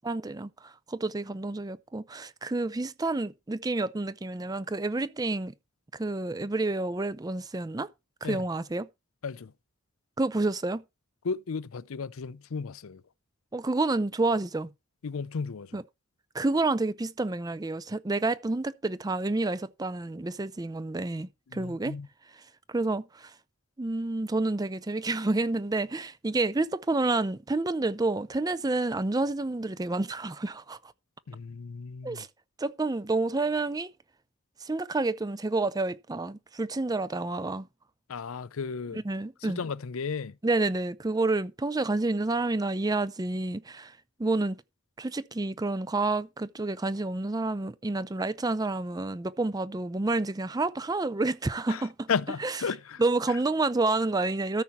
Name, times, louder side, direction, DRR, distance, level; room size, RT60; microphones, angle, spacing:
voice 1, 0.0-5.5 6.0-7.9 8.2-8.9 10.2-10.8 13.5-14.7 15.7-15.8 16.3-22.0 22.7-23.3 23.8-30.8 32.0-32.3 32.6-33.9 34.6-37.7 38.9-39.6 40.4-43.9 44.2-44.6 45.0-52.1 52.4-52.5 53.0-54.6, right 2 dB, 20° right, 0.5 m, -29 dB
voice 2, 11.2-13.0 15.0-15.8 21.5-22.1 31.3-32.2 38.1-39.0 39.4-40.4 51.7-53.0, left 5 dB, 75° left, 0.5 m, -34 dB
13.5 x 5.8 x 4.4 m
head